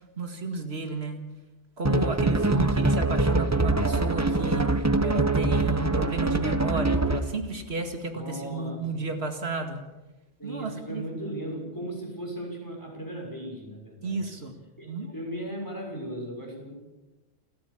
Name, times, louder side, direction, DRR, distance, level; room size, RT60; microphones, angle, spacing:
voice 1, 0.2-1.2 1.8-9.8 10.4-11.0 14.0-14.5 14.8-15.1, right 3 dB, 80° right, 5 dB, 2.4 m, -32 dB
sound 1, 1.9-7.4, right 2 dB, 15° right, 1.0 m, -24 dB
voice 2, 8.1-9.1 10.4-14.3 14.8-16.8, right 1 dB, 20° left, 0 dB, 6.3 m, -37 dB
29.0 x 14.0 x 7.3 m, 1.1 s
omnidirectional pair, 1.1 m